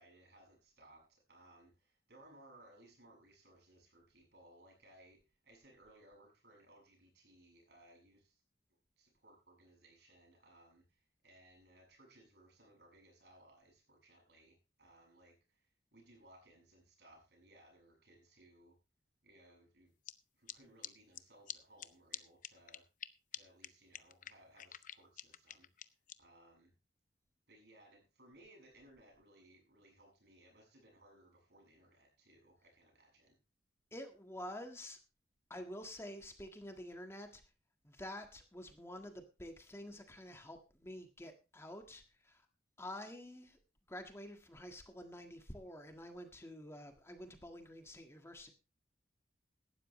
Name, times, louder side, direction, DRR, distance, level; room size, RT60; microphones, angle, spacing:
voice 1, 0.0-8.4 9.0-18.8 19.2-20.0 20.3-22.8 23.3-25.7 26.2-26.7 27.5-33.4, right 1 dB, 70° right, 1 dB, 7.1 m, -63 dB
sound 1, 20.1-20.2 20.5-20.6 20.8-20.9 21.2-21.3 21.5-21.6 21.8-21.9 22.1-22.2 22.4-23.1 23.3-23.4 23.6-23.7 23.9-26.1, left 11 dB, 50° left, 0.8 m, -45 dB
voice 2, 33.9-35.0 35.5-37.4 37.8-42.4 42.8-43.6 43.9-48.5, left 1 dB, 15° left, 5 dB, 1.7 m, -49 dB
17.5 x 12.5 x 3.2 m, 0.31 s
head